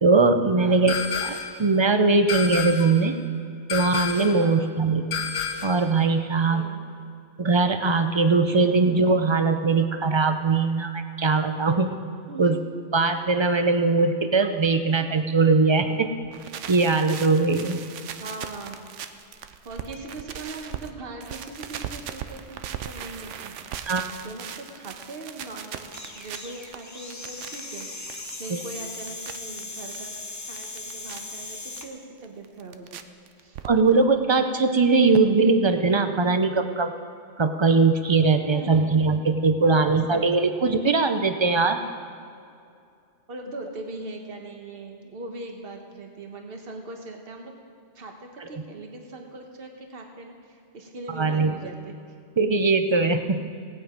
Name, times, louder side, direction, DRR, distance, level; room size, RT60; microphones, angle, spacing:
voice 1, 0.0-3.2 3.7-5.1 5.6-6.7 7.4-11.9 12.4-12.6 12.9-16.1 16.7-17.8 23.9-24.1 28.5-28.6 33.6-36.9 37.4-41.8 48.5-48.6 51.2-51.5 52.4-53.4, right 3 dB, 35° right, 8 dB, 0.4 m, -21 dB
voice 2, 0.5-0.9 2.9-3.1 4.3-4.7 6.5-6.8 8.5-8.8 12.3-12.6 15.8-16.1 18.2-18.9 19.6-23.7 24.2-30.1 30.5-33.0 33.4-33.6 35.5-35.6 38.3-39.1 39.6-40.5 41.4-41.8 43.3-47.5 47.9-51.9, right 2 dB, 50° right, 3 dB, 1.5 m, -40 dB
sound 1, 0.9-1.6 2.3-3.0 3.7-4.4 5.1-5.8, left 6 dB, 90° left, 1.3 m, -30 dB
sound 2, 16.2-20.9 21.2-30.0 30.3-31.2 31.8-31.9 32.2-33.0 33.3-34.0 34.3-34.4 34.6-34.7 34.9-35.0, right 9 dB, 85° right, 1.0 m, -38 dB
sound 3, 25.8-31.9, left 2 dB, 15° left, 0.9 m, -38 dB
17.5 x 8.9 x 5.2 m, 2.4 s
omnidirectional pair, 1.2 m